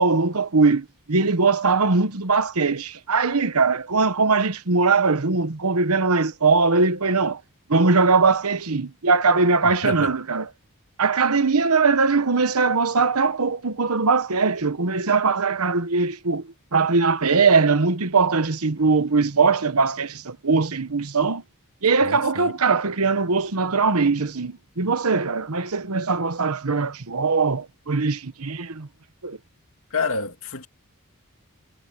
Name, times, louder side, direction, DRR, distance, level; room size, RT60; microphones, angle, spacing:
voice 1, 0.0-7.4 7.7-10.5 11.0-16.4 16.7-21.4 21.8-28.9 29.2-29.4, right 4 dB, 75° right, 1.2 m, -21 dB
voice 2, 9.6-10.1 22.0-22.5 29.9-30.7, left 4 dB, 65° left, 2.5 m, -28 dB
head